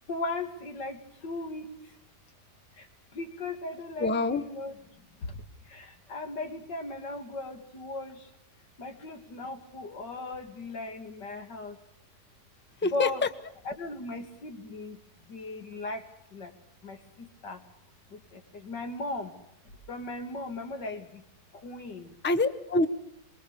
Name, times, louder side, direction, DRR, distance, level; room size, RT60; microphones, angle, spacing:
voice 1, 0.1-1.0 1.2-1.7 3.2-4.7 5.7-5.8 6.1-8.1 8.8-11.7 12.9-13.2 13.7-15.0 15.3-16.0 16.3-16.5 16.8-17.0 17.4-17.6 18.6-19.3 19.9-21.0 21.6-22.1, left 2 dB, 90° left, 5 dB, 3.2 m, -36 dB
voice 2, 4.0-4.4 12.8-13.3 22.2-22.9, left 3 dB, 10° left, 11 dB, 0.8 m, -26 dB
24.0 x 22.5 x 6.9 m, 0.76 s
omnidirectional pair, 1.8 m